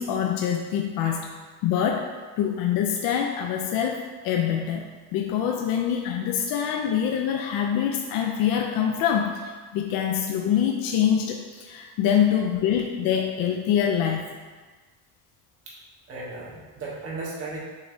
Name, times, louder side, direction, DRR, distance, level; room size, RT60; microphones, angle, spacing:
voice 1, 0.0-1.3 1.6-2.1 2.4-14.4, left 9 dB, 60° left, 2 dB, 0.5 m, -25 dB
voice 2, 16.1-17.6, right 3 dB, 35° right, -6 dB, 1.2 m, -36 dB
6.5 x 3.0 x 2.6 m, 1.3 s
cardioid pair, 165°, 41 cm